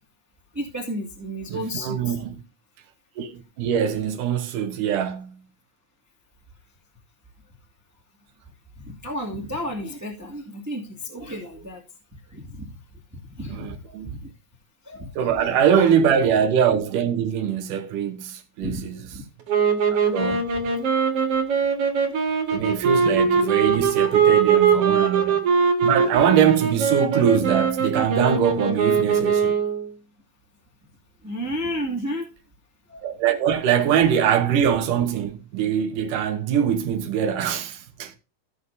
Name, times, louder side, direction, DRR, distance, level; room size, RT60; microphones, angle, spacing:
voice 1, 0.5-2.2 8.9-11.8 12.3-12.7 13.2-13.8 14.0-14.3 14.8-15.9 18.6-18.8 19.1-19.2 20.6-20.7 22.5-22.6 24.1-24.2 24.5-24.6 31.2-32.2 32.9-33.1, equal, 5° right, 1.5 m, -32 dB
voice 2, 1.5-2.4 3.2-5.4 13.5-14.2 15.2-19.0 19.9-20.4 22.5-25.5 25.8-29.6 33.0-38.2, right 8 dB, 85° right, 2.7 m, -23 dB
sound 1, 19.5-29.9, right 6 dB, 55° right, 2.6 m, -21 dB
16.0 x 6.6 x 2.7 m
omnidirectional pair, 3.6 m